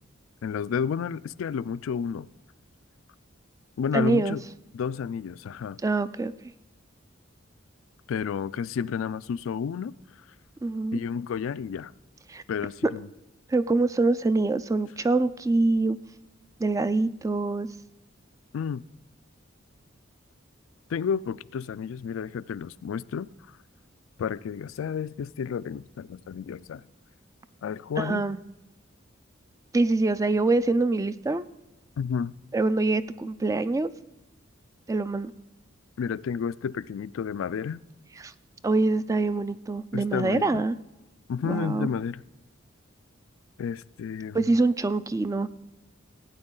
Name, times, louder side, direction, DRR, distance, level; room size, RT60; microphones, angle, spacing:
voice 1, 0.4-2.3 3.8-4.4 4.7-5.8 8.1-9.9 10.9-11.9 12.5-13.1 18.5-18.9 20.9-23.6 24.2-26.8 27.6-28.2 32.0-32.3 36.0-37.8 39.9-40.6 41.3-42.2 43.6-44.5, left 7 dB, 80° left, 0.3 m, -31 dB
voice 2, 3.9-4.4 5.8-6.3 10.6-11.0 12.3-12.4 13.5-16.0 16.6-17.7 28.0-28.4 29.7-31.5 32.5-33.9 34.9-35.3 38.2-38.3 38.6-40.8 41.4-41.9 44.3-45.5, right 3 dB, 15° right, 0.3 m, -24 dB
16.0 x 8.8 x 3.8 m
head